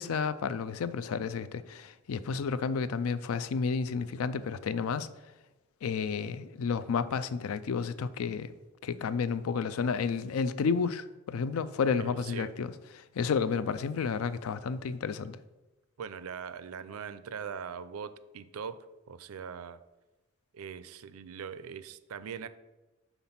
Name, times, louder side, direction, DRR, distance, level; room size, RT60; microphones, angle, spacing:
voice 1, 0.0-5.1 5.8-8.5 8.8-15.4, left 5 dB, 80° left, 0.4 m, -31 dB
voice 2, 12.0-12.5 16.0-19.8 20.5-22.5, right 6 dB, 85° right, 0.4 m, -41 dB
5.9 x 4.0 x 5.6 m
head